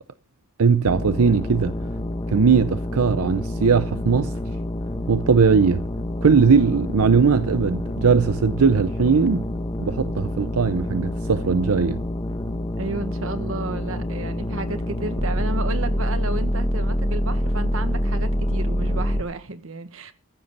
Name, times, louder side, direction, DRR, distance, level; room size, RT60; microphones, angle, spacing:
voice 1, 0.6-1.8 2.3-4.3 5.1-5.8 6.2-9.5 9.8-12.0, right 5 dB, 85° right, 0.6 m, -19 dB
sound 1, 0.9-19.2, left 1 dB, 20° left, 1.2 m, -27 dB
voice 2, 12.8-20.1, right 2 dB, 65° right, 1.4 m, -32 dB
15.0 x 7.8 x 6.8 m
head